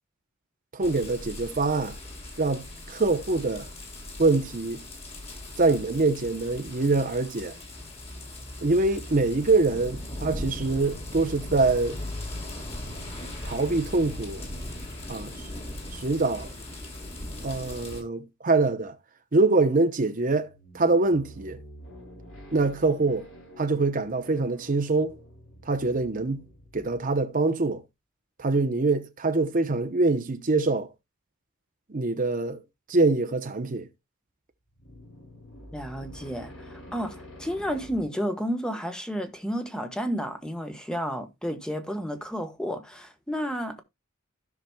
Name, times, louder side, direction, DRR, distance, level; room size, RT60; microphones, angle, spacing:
voice 1, 0.7-2.0 2.4-3.7 4.2-4.8 5.6-7.5 8.6-12.0 13.4-14.4 15.1-15.3 15.9-16.5 17.4-19.0 19.3-21.6 22.5-23.3 23.6-25.2 25.7-26.4 26.7-27.8 28.4-30.9 31.9-32.6 32.9-33.9, right 3 dB, 40° right, 0.8 m, -24 dB
sound 1, 0.8-18.0, left 1 dB, 30° left, 3.0 m, -39 dB
sound 2, 20.3-27.1 34.7-38.0, equal, 85° left, 6.2 m, -47 dB
voice 2, 35.7-43.8, equal, 5° left, 1.2 m, -31 dB
16.0 x 5.9 x 2.2 m
head